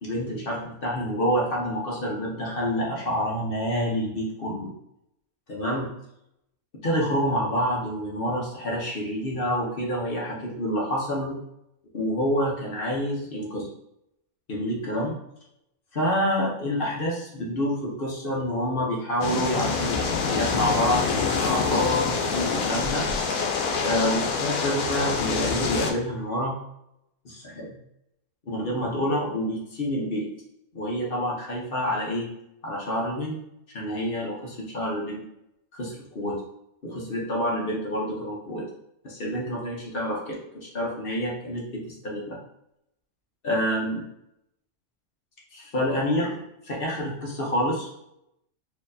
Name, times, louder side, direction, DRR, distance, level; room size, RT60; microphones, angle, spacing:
voice 1, 0.0-4.7 5.5-5.9 6.8-11.4 11.9-13.7 14.5-15.1 15.9-22.1 22.3-23.1 23.8-26.5 27.2-27.8 28.5-30.3 30.7-32.3 32.6-33.4 33.7-35.2 35.7-36.4 36.8-38.6 39.0-42.4 43.4-44.0 45.5-47.9, equal, 45° left, -3 dB, 1.0 m, -28 dB
sound 1, 19.2-25.9, left 5 dB, 85° left, 1.1 m, -26 dB
4.3 x 2.8 x 2.7 m, 0.82 s
omnidirectional pair, 1.4 m